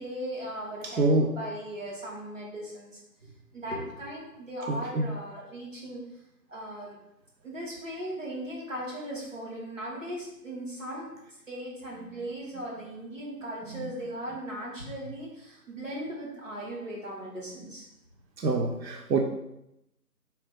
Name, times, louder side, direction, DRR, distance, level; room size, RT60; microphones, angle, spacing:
voice 1, 0.0-6.0 6.5-7.0 7.4-11.1 11.5-17.8, right 1 dB, 50° right, -4 dB, 1.5 m, -38 dB
voice 2, 0.8-1.3 4.7-5.1 13.7-13.8 18.4-19.2, right 3 dB, 90° right, 3 dB, 0.7 m, -26 dB
4.3 x 2.8 x 3.5 m, 0.84 s
figure-of-eight pair, 175°, 50 cm